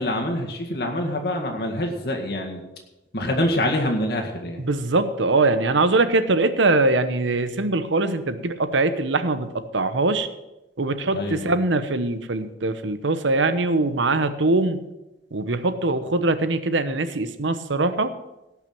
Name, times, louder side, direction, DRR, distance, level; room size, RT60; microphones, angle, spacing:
voice 1, 0.0-2.6 3.1-4.6 11.1-11.5, left 1 dB, 60° left, 1 dB, 1.9 m, -25 dB
voice 2, 4.6-10.3 10.8-14.8 15.3-18.1, right 2 dB, 90° right, 11 dB, 0.9 m, -22 dB
18.0 x 6.0 x 6.1 m, 0.97 s
head